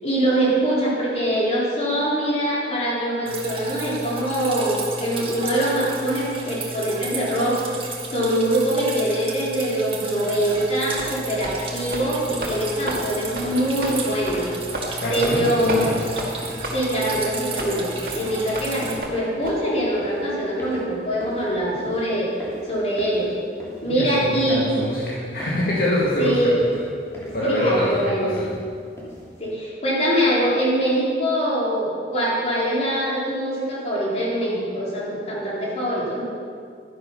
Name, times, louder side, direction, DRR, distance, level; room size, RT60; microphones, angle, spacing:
voice 1, 0.0-14.5 14.8-15.9 16.7-23.3 23.8-24.6 26.2-26.6 27.2-28.4 29.4-36.2, right 1 dB, 35° left, -6 dB, 3.9 m, -23 dB
Drip, 3.3-19.0, right 3 dB, 30° right, 1.7 m, -33 dB
sound 1, 10.5-10.6 11.0-11.1 11.4-11.6 11.9-12.1 12.4-12.5 12.9-13.0 13.3-13.5 13.8-13.9 14.3-14.4 14.7-14.9 15.2-15.4 15.7-15.8 16.2-16.3 16.6-16.8 17.1-17.2 17.6-17.7 18.1-18.2 18.5-18.7 19.0-19.1 19.4-19.5, right 1 dB, 55° right, 2.1 m, -31 dB
sound 2, 12.2-29.5, equal, 15° left, 2.7 m, -42 dB
voice 2, 15.0-15.9 23.9-26.5 27.3-28.5, left 1 dB, 55° left, -6 dB, 2.0 m, -24 dB
12.5 x 10.5 x 5.6 m, 2.2 s
head